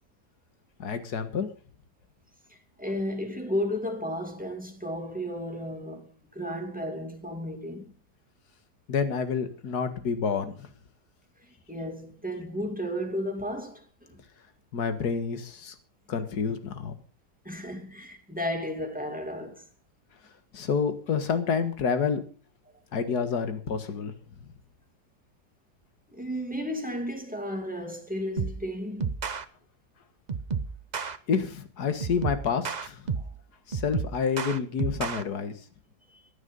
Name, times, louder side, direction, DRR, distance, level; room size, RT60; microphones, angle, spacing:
voice 1, 0.8-1.5 8.9-10.7 14.7-15.7 16.1-16.9 20.5-22.2 22.9-24.1 31.3-33.0 33.7-35.5, left 6 dB, 60° left, 2.1 m, -28 dB
voice 2, 2.5-7.9 11.7-14.2 17.4-19.6 26.1-29.1 33.2-33.3 36.1-36.2, equal, 5° right, 2.5 m, -33 dB
sound 1, 28.4-28.7 29.0-29.4 30.3-31.2 32.0-33.4 33.7-35.2, right 5 dB, 40° right, 0.6 m, -31 dB
16.5 x 11.0 x 5.5 m
omnidirectional pair, 1.9 m